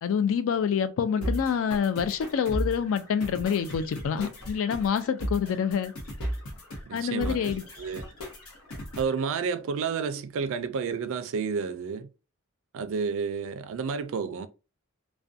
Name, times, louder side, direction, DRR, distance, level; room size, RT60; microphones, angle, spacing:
voice 1, 0.0-5.9 6.9-7.6, left 7 dB, 65° left, 0.3 m, -27 dB
sound 1, 1.2-9.2, equal, 85° left, 0.8 m, -36 dB
voice 2, 6.9-8.0 9.0-12.1 12.7-14.5, right 5 dB, 65° right, 0.3 m, -31 dB
2.4 x 2.1 x 2.6 m
head